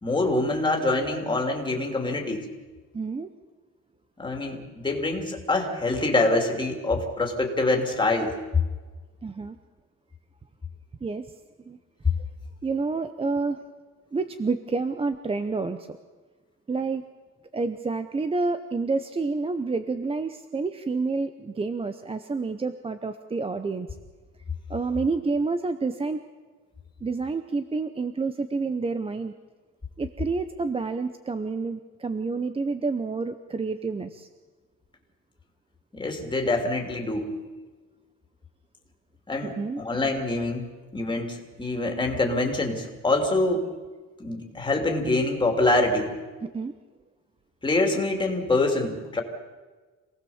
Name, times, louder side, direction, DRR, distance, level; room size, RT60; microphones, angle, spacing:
voice 1, 0.0-2.5 4.2-8.4 35.9-37.3 39.3-40.7 40.9-43.7 44.2-46.1 47.6-49.2, left 2 dB, 15° left, 2 dB, 2.9 m, -25 dB
voice 2, 2.9-3.3 9.2-9.6 11.0-11.3 11.7-11.8 12.6-13.6 14.1-16.0 16.7-17.0 17.5-23.9 24.7-26.2 27.0-29.3 30.0-34.3 39.6-39.8 46.4-46.7, right 4 dB, 15° right, 10 dB, 0.7 m, -29 dB
27.0 x 18.5 x 7.2 m, 1.3 s
cardioid pair, 165°, 34 cm